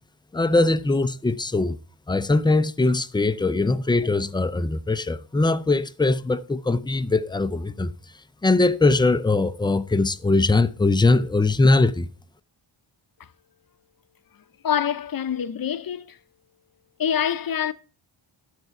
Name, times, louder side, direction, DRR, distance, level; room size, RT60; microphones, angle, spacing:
voice 1, 0.3-1.8 2.1-7.9 8.4-12.1, left 2 dB, 10° left, 0.4 m, -21 dB
voice 2, 14.6-16.2 17.0-17.7, left 8 dB, 45° left, 0.7 m, -25 dB
11.0 x 6.7 x 4.6 m
wide cardioid pair, 105°, 48 cm